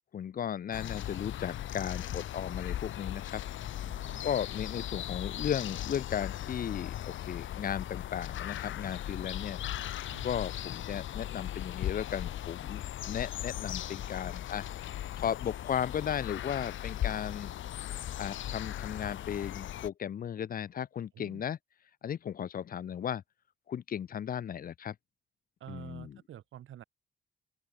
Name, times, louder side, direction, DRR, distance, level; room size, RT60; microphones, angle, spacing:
voice 1, 0.1-3.4 4.2-9.6 10.2-14.6 15.2-17.5 18.2-21.6 22.0-23.2 23.7-24.9 25.7-26.2, left 9 dB, 45° left, 0.9 m, -35 dB
sound 1, 0.7-19.9, left 12 dB, 75° left, 1.2 m, -38 dB
voice 2, 3.8-4.3 10.1-10.3 13.3-13.5 21.1-21.4 25.6-26.8, right 11 dB, 85° right, 5.2 m, -48 dB
open air
wide cardioid pair, 170°, 20 cm